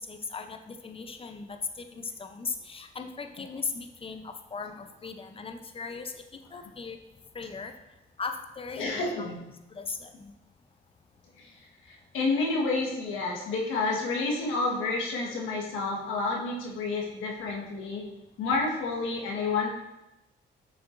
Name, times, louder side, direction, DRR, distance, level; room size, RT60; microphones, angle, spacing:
voice 1, 0.0-6.2 6.5-7.0 7.3-7.7 8.2-9.1 9.7-10.3, left 4 dB, 30° left, 6 dB, 0.7 m, -38 dB
voice 2, 8.8-9.4 11.9-18.0 18.4-19.7, left 3 dB, 90° left, -2 dB, 1.4 m, -29 dB
7.1 x 6.0 x 2.6 m, 0.95 s
cardioid pair, 90°, 20 cm